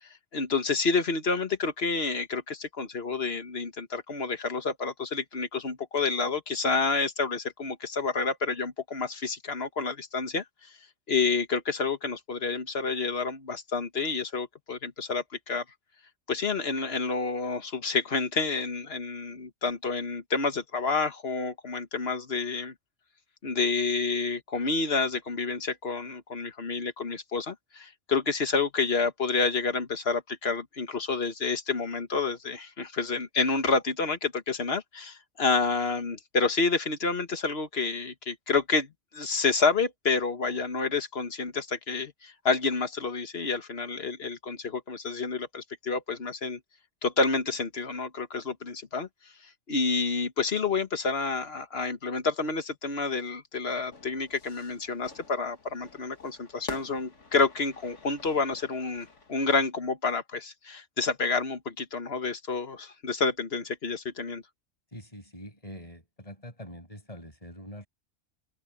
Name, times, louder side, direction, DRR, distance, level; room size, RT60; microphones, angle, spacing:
voice 1, 0.0-10.8 11.1-15.6 16.3-22.7 23.4-46.6 47.0-49.1 49.7-64.4, left 4 dB, 55° left, 1.8 m, -29 dB
Fire / Fireworks, 53.9-59.5, left 4 dB, 75° left, 2.5 m, -47 dB
voice 2, 64.9-67.9, equal, 30° left, 7.5 m, -44 dB
omnidirectional pair, 1.2 m